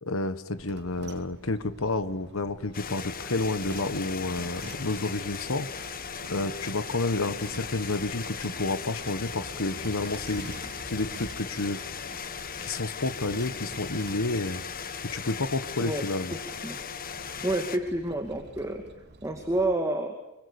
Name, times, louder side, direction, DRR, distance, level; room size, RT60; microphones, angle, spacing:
voice 1, 0.0-5.7 6.3-10.5 10.9-11.8 12.6-14.6 15.1-16.4, left 2 dB, 70° left, 12 dB, 1.4 m, -30 dB
sound 1, 0.5-19.7, right 1 dB, 55° right, 2.8 m, -47 dB
sound 2, 2.7-17.8, left 6 dB, 45° left, 1.5 m, -38 dB
voice 2, 15.8-16.4 16.6-16.8 17.4-18.8 19.2-20.2, right 1 dB, 15° right, 4 dB, 2.4 m, -29 dB
25.5 x 25.5 x 7.0 m, 0.99 s
head